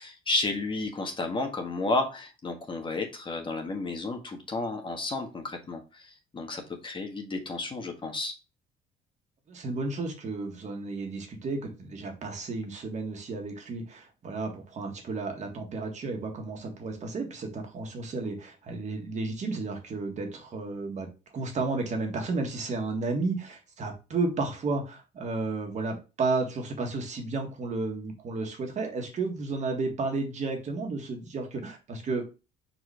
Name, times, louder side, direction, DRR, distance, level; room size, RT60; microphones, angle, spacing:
voice 1, 0.0-8.3, left 2 dB, 30° left, 4 dB, 1.5 m, -32 dB
voice 2, 9.5-21.1 21.3-32.3, right 3 dB, 45° right, 3 dB, 1.9 m, -32 dB
4.7 x 4.3 x 4.9 m, 0.30 s
cardioid pair, 110°, 17 cm